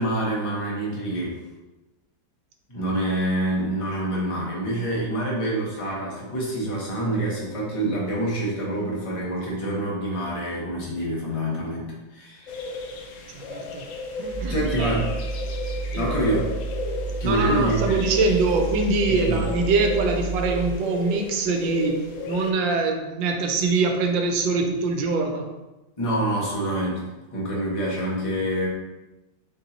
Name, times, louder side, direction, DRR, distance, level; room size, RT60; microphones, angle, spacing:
voice 1, 0.0-1.4 2.7-12.6 14.5-15.1 16.0-16.5 17.2-17.9 19.1-19.4 26.0-28.7, right 1 dB, 25° left, -4 dB, 0.9 m, -26 dB
sound 1, 12.5-22.5, left 3 dB, 80° left, 0.7 m, -34 dB
voice 2, 13.3-13.9 14.2-15.0 15.9-16.2 17.2-25.5, right 3 dB, 85° right, 4 dB, 1.3 m, -24 dB
sound 2, 14.3-20.8, right 3 dB, 10° right, 0.8 m, -31 dB
4.6 x 2.9 x 3.9 m, 1.1 s
omnidirectional pair, 2.0 m